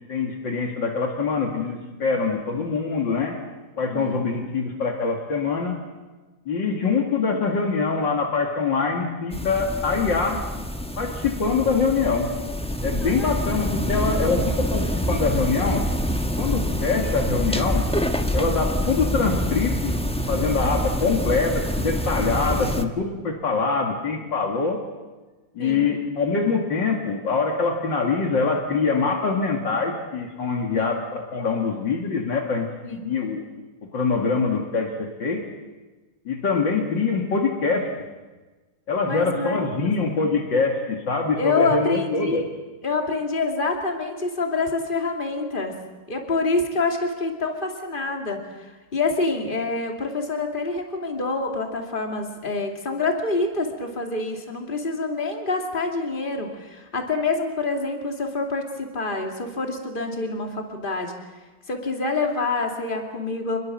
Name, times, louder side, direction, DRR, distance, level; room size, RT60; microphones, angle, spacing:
voice 1, 0.1-3.4 3.8-5.8 6.5-10.4 11.0-12.3 12.8-15.8 16.4-17.8 18.3-19.9 20.3-24.8 25.5-33.4 33.9-35.4 36.3-37.9 38.9-42.4, left 4 dB, 75° left, 2 dB, 3.0 m, -24 dB
voice 2, 3.9-4.2 13.0-13.3 13.9-14.4 25.6-25.9 30.8-31.0 32.8-33.0 39.1-39.9 41.4-42.4 42.8-45.7 46.1-61.1 61.7-63.6, left 3 dB, 25° left, 3 dB, 2.8 m, -27 dB
sound 1, 9.3-22.8, equal, 5° left, 0.7 m, -26 dB
26.5 x 21.5 x 7.5 m, 1.2 s
omnidirectional pair, 2.0 m